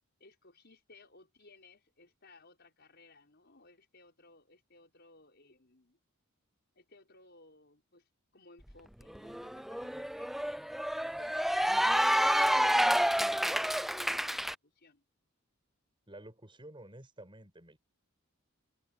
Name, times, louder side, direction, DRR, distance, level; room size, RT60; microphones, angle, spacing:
voice 1, 0.2-6.0 6.8-10.6 11.0-15.0, left 3 dB, 50° left, 5.9 m, -60 dB
Cheering / Applause, 8.7-8.8 9.1-14.5, equal, ahead, 0.5 m, -29 dB
voice 2, 16.1-17.8, right 1 dB, 25° right, 5.6 m, -51 dB
open air
head